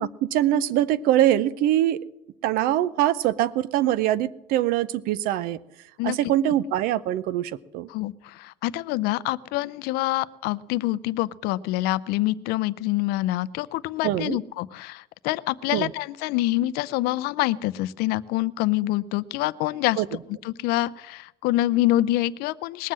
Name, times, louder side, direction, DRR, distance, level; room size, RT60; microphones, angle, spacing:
voice 1, 0.0-2.0 2.4-5.6 6.0-7.9 14.0-14.4 15.7-15.9 20.0-20.1, right 12 dB, 55° right, 19 dB, 0.6 m, -23 dB
voice 2, 7.9-20.0 20.3-22.9, left 16 dB, 60° left, 17 dB, 0.5 m, -26 dB
20.0 x 7.5 x 7.4 m, 0.90 s
cardioid pair, 175°, 18 cm